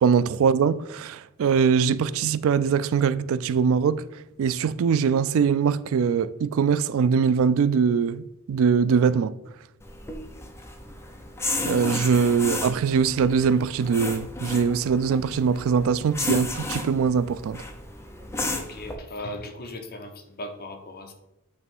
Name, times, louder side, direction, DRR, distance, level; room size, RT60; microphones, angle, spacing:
voice 1, 0.0-4.0 4.4-9.4 11.6-17.6, right 6 dB, 65° right, 0.3 m, -22 dB
sound 1, 9.8-18.9, left 2 dB, 10° left, 0.7 m, -33 dB
voice 2, 18.4-21.1, left 1 dB, 45° left, 1.0 m, -38 dB
8.4 x 3.2 x 5.4 m
head